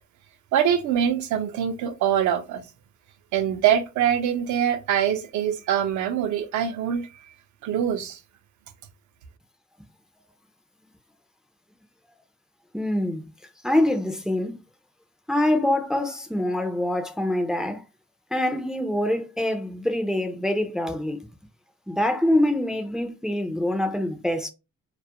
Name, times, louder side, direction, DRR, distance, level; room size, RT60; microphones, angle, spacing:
voice 1, 0.5-2.6 3.3-7.3 7.6-8.2, right 9 dB, 75° right, 0.5 m, -24 dB
voice 2, 12.7-13.3 13.6-14.6 15.3-17.8 18.3-21.3 21.9-24.5, left 1 dB, ahead, 0.4 m, -25 dB
2.3 x 2.0 x 2.8 m
cardioid pair, 90°, 30 cm